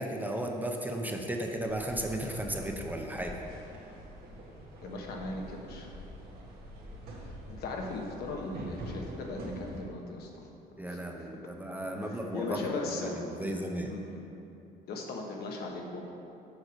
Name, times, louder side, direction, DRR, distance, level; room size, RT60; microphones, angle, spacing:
voice 1, 0.0-3.4 10.8-12.6 13.0-13.1 13.4-13.9, right 1 dB, 10° right, 2 dB, 0.6 m, -35 dB
sound 1, 1.7-9.8, equal, 65° right, 1.6 m, -45 dB
voice 2, 4.8-5.9 7.2-10.5 10.9-11.3 12.0-13.6 13.9-14.2 14.9-16.0, left 3 dB, 70° left, 1 dB, 1.1 m, -38 dB
6.4 x 4.8 x 6.1 m, 2.7 s
cardioid pair, 110°, 17 cm